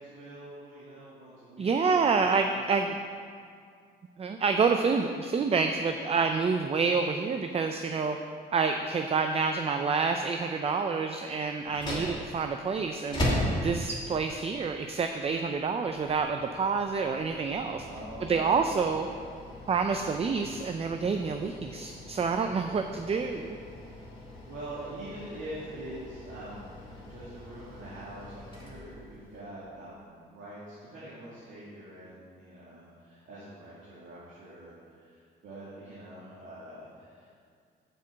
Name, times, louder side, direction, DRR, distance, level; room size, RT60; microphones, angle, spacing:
voice 1, 0.0-2.6 17.8-18.8 24.2-37.3, right 1 dB, 75° right, -9 dB, 2.2 m, -45 dB
voice 2, 1.6-3.0 4.2-8.2 8.5-13.2 13.6-17.9 18.3-19.1 19.7-23.6, right 5 dB, 30° right, 6 dB, 0.5 m, -28 dB
sound 1, 11.6-29.4, equal, 20° left, 2.4 m, -39 dB
6.7 x 5.6 x 7.3 m, 2.2 s
cardioid pair, 90°, 20 cm